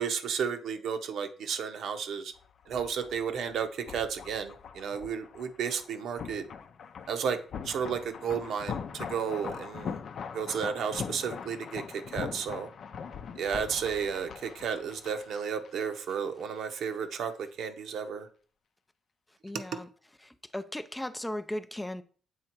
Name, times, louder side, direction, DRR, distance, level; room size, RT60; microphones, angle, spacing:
voice 1, 0.0-2.3 2.7-6.4 7.1-7.4 7.6-10.0 10.3-12.7 13.4-18.3, right 7 dB, 70° right, 0.9 m, -33 dB
sound 1, 2.4-16.2 16.4-16.6, left 6 dB, 60° left, 0.6 m, -42 dB
voice 2, 19.4-19.9 20.2-22.0, left 1 dB, 10° left, 0.4 m, -37 dB
7.5 x 3.6 x 4.4 m
cardioid pair, 90°, 0 cm